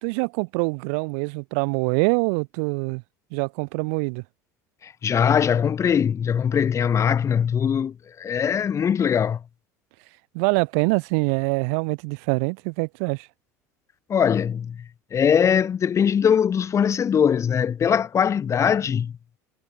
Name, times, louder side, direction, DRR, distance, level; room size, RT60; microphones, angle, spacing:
voice 1, 0.0-3.0 3.3-4.2 10.3-13.3, right 36 dB, 70° right, 3.0 m, -24 dB
voice 2, 4.8-9.4 14.1-14.8 15.1-19.1, left 8 dB, 35° left, 1.6 m, -21 dB
hypercardioid pair, 75°, 9 cm